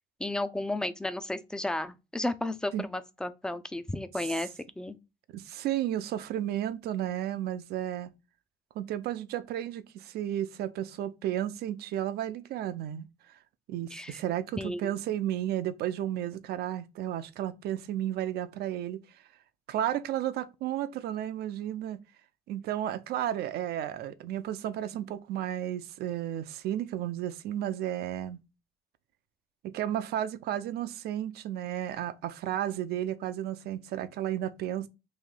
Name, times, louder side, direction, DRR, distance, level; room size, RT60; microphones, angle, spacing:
voice 1, 0.2-4.5 4.8-5.0 13.9-14.2 14.6-14.9, left 1 dB, 5° left, 0.4 m, -33 dB
voice 2, 5.3-8.1 8.8-13.4 13.7-19.0 19.7-22.0 22.5-28.4 29.6-34.9, right 11 dB, 70° right, 0.5 m, -33 dB
3.1 x 2.7 x 3.7 m
cardioid pair, 110°, 17 cm